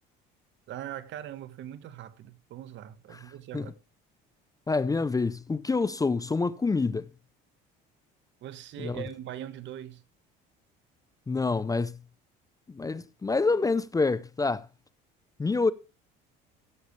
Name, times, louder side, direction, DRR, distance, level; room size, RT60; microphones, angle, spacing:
voice 1, 0.7-3.7 8.4-10.0, right 11 dB, 60° right, 1.4 m, -41 dB
voice 2, 4.7-7.1 8.8-9.0 11.3-12.0 12.7-14.7 15.4-15.7, left 3 dB, 15° left, 0.6 m, -27 dB
15.5 x 8.4 x 3.2 m
supercardioid pair, 85°, 21 cm